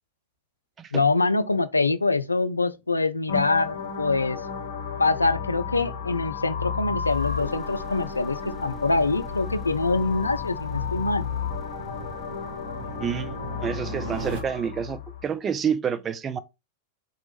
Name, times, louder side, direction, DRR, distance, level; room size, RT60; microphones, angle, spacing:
voice 1, 0.9-4.4 5.0-11.4, left 3 dB, 80° left, 0.3 m, -24 dB
sound 1, 3.3-15.2, left 6 dB, 60° left, 0.8 m, -33 dB
sound 2, 3.8-14.4, right 3 dB, 50° right, 1.2 m, -42 dB
sound 3, 7.0-14.6, left 2 dB, 20° left, 0.7 m, -46 dB
voice 2, 12.8-13.3 13.6-16.4, right 7 dB, 25° right, 0.4 m, -28 dB
4.1 x 3.0 x 3.2 m
figure-of-eight pair, 90°, 0 cm